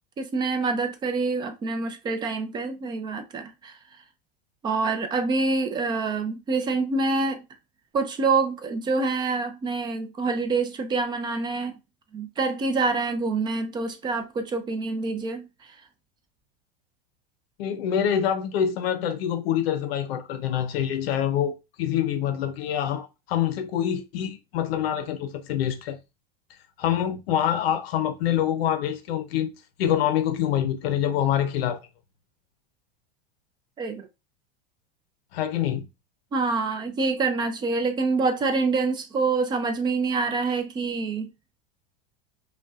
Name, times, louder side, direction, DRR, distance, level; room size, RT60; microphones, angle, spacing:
voice 1, 0.2-3.7 4.6-7.4 7.9-11.8 12.1-15.5 33.8-34.1 36.3-41.3, right 4 dB, 15° right, 0.4 m, -26 dB
voice 2, 17.6-26.0 26.8-29.5 29.8-31.8 35.3-35.9, left 10 dB, 75° left, 0.6 m, -26 dB
5.1 x 2.2 x 2.4 m
supercardioid pair, 140°, 30 cm